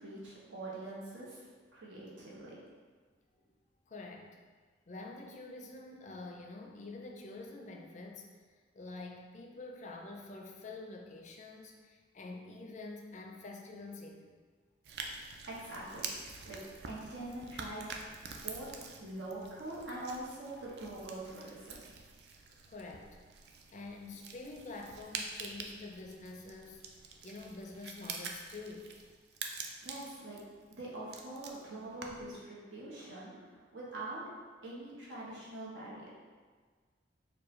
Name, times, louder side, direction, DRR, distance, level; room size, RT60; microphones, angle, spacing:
voice 1, 0.0-1.4 1.7-2.6 15.5-16.1 16.4-16.6 16.9-18.1 18.4-18.7 19.0-21.9 29.8-30.4 30.7-34.2 34.6-36.1, right 2 dB, 85° right, -6 dB, 1.1 m, -44 dB
voice 2, 3.9-4.4 4.9-8.3 8.7-14.4 22.7-23.2 23.7-26.8 27.2-28.9, left 3 dB, 40° left, 2 dB, 0.4 m, -47 dB
sound 1, 14.8-32.4, right 4 dB, 60° right, 0.4 m, -46 dB
4.6 x 2.2 x 3.1 m, 1.5 s
head